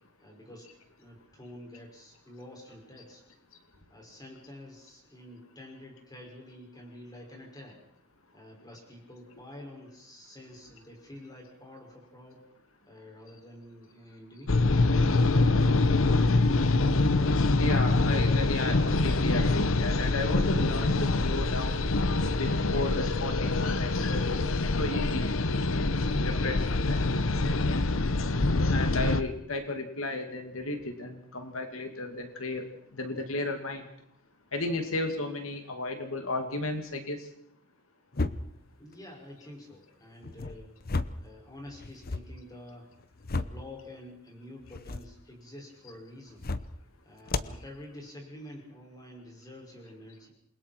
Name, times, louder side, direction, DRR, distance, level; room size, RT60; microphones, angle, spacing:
voice 1, 0.2-3.2 3.9-7.8 8.3-12.4 12.9-14.9 38.8-40.7 41.2-42.9 43.3-46.5 47.0-50.3, left 1 dB, 20° left, 0 dB, 6.3 m, -48 dB
sound 1, 14.5-29.2, left 2 dB, 75° left, 1.0 m, -25 dB
voice 2, 17.5-21.8 22.4-24.4 24.8-25.3 25.8-27.0 28.7-32.6 32.9-33.9 34.5-37.3, left 2 dB, 90° left, 5 dB, 2.5 m, -34 dB
sound 2, 38.1-38.7 40.2-41.3 41.7-42.3 42.9-43.7 44.6-45.1 46.3-46.8 47.3-47.6, left 3 dB, 45° left, 0.9 m, -33 dB
28.0 x 21.5 x 4.7 m, 0.70 s
head